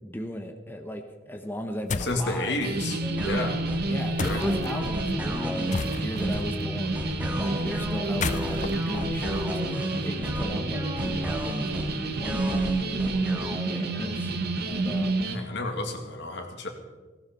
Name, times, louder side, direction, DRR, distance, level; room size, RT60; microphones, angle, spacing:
voice 1, 0.0-2.6 3.1-3.6 3.9-15.2, left 1 dB, 10° left, 4 dB, 1.1 m, -37 dB
sound 1, 1.9-2.3 4.2-4.7 5.7-6.3 8.0-10.0, left 4 dB, 40° left, 0.5 m, -33 dB
voice 2, 2.0-3.6 4.2-4.4 15.2-16.7, left 2 dB, 65° left, 4 dB, 2.4 m, -31 dB
sound 2, 2.6-15.4, right 2 dB, 55° right, 1.4 m, -29 dB
sound 3, 3.0-14.5, equal, 10° right, 1.8 m, -35 dB
17.5 x 17.0 x 4.4 m, 1.3 s
head